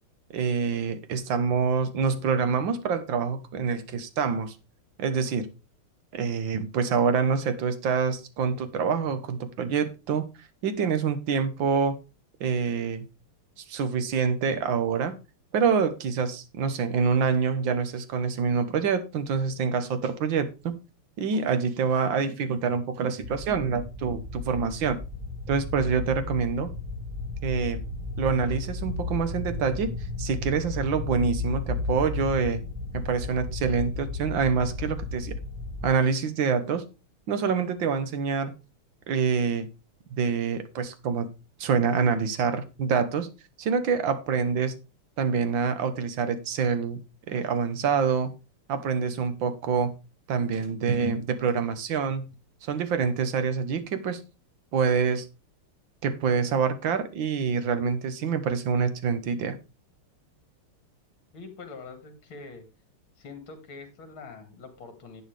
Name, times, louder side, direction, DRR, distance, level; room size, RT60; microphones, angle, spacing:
voice 1, 0.3-4.6 5.0-5.5 6.1-10.3 10.6-12.0 12.4-13.1 13.7-15.2 15.5-20.8 21.2-25.0 25.5-26.7 27.4-27.8 28.2-32.6 32.9-35.3 35.8-36.9 37.3-38.5 39.1-39.7 40.1-41.3 41.6-43.3 43.6-44.8 45.2-47.0 47.3-48.3 48.7-49.9 50.3-52.3 52.6-54.2 54.7-55.3 56.0-59.6, right 6 dB, 65° right, 1.8 m, -26 dB
sound 1, 23.2-35.9, left 3 dB, 20° right, 1.2 m, -34 dB
voice 2, 61.3-62.7 63.2-65.2, left 4 dB, 65° left, 2.9 m, -44 dB
11.0 x 8.8 x 3.4 m
omnidirectional pair, 2.4 m